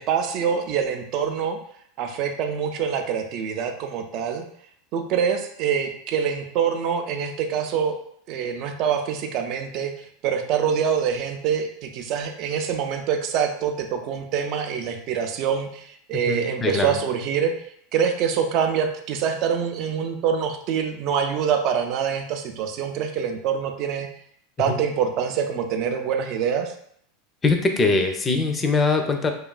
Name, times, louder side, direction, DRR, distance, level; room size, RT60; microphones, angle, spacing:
voice 1, 0.0-1.6 2.0-4.4 4.9-8.0 8.3-9.9 10.2-17.5 17.9-24.1 24.6-26.7, right 7 dB, 50° right, 5 dB, 0.4 m, -25 dB
voice 2, 16.1-17.0 24.7-24.8 27.4-29.3, left 3 dB, 25° left, 5 dB, 0.4 m, -22 dB
2.9 x 2.3 x 2.2 m, 0.67 s
hypercardioid pair, 90°, 0 cm